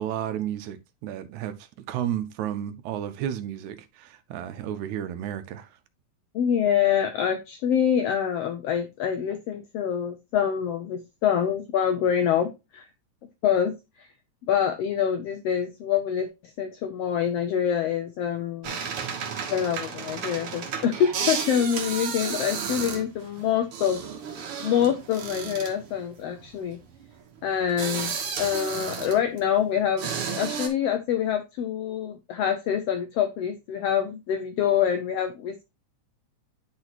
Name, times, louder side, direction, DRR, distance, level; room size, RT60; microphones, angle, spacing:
voice 1, 0.0-5.7, right 10 dB, 75° right, 1.9 m, -32 dB
voice 2, 6.3-12.9 13.4-13.7 14.5-16.3 16.6-18.8 19.5-24.0 24.6-26.8 27.4-28.1 28.4-35.6, left 8 dB, 90° left, 1.3 m, -26 dB
sound 1, 18.6-29.5 30.0-30.7, right 6 dB, 55° right, 1.7 m, -33 dB
10.5 x 4.1 x 2.9 m
omnidirectional pair, 3.6 m